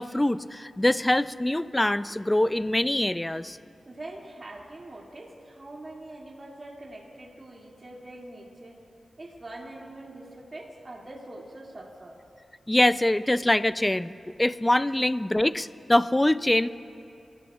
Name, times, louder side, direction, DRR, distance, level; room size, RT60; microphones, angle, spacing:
voice 1, 0.0-3.6 12.7-14.1 14.4-16.7, left 1 dB, 15° left, 15 dB, 0.4 m, -24 dB
voice 2, 3.8-8.7 9.2-12.2, right 1 dB, 40° right, -3 dB, 2.4 m, -43 dB
25.0 x 16.0 x 2.4 m, 2.6 s
cardioid pair, 60°, 0 cm